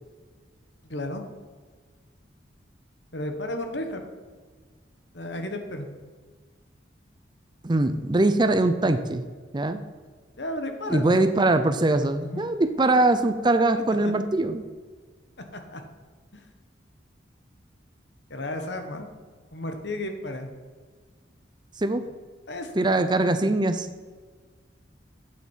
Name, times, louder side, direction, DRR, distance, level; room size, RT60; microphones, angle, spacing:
voice 1, 0.8-1.2 3.1-4.0 5.1-5.9 10.4-11.2 12.2-12.4 14.0-14.2 15.5-15.8 16.3-16.4 18.3-19.1 19.5-20.5 22.5-22.9, left 1 dB, 65° left, 5 dB, 1.3 m, -33 dB
voice 2, 7.6-9.2 9.5-9.8 10.9-14.6 21.8-22.0 22.8-23.9, right 2 dB, 25° right, 10 dB, 0.5 m, -22 dB
8.6 x 7.5 x 5.5 m, 1.5 s
head